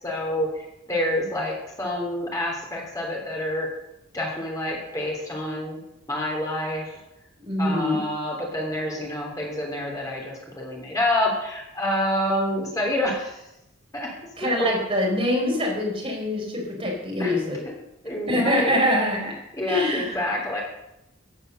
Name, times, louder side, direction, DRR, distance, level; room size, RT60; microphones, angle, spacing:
voice 1, 0.0-3.7 4.1-5.8 6.1-7.0 7.6-13.4 13.9-14.1 14.4-14.7 17.2-17.4 17.6-17.7 18.0-18.8 19.5-20.6, left 1 dB, 15° left, -2 dB, 3.2 m, -28 dB
voice 2, 7.4-8.0 14.4-17.6 18.3-19.4 19.7-20.1, left 1 dB, 30° right, -2 dB, 4.3 m, -24 dB
14.5 x 9.8 x 6.7 m, 0.86 s
head